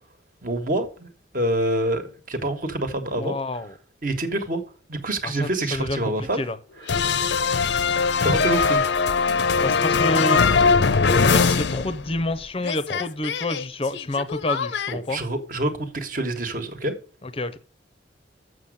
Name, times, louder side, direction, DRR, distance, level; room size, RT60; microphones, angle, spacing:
voice 1, 0.4-1.1 1.3-3.4 4.0-4.6 4.9-6.5 6.8-6.9 8.2-8.8 15.1-16.9, right 1 dB, 45° right, 1.3 m, -26 dB
voice 2, 3.2-3.7 5.2-6.6 9.6-10.4 11.2-15.2 17.2-17.6, left 2 dB, 30° left, 0.6 m, -28 dB
sound 1, 6.9-12.3 12.6-14.9, left 5 dB, 70° left, 0.6 m, -21 dB
7.2 x 6.2 x 6.3 m
head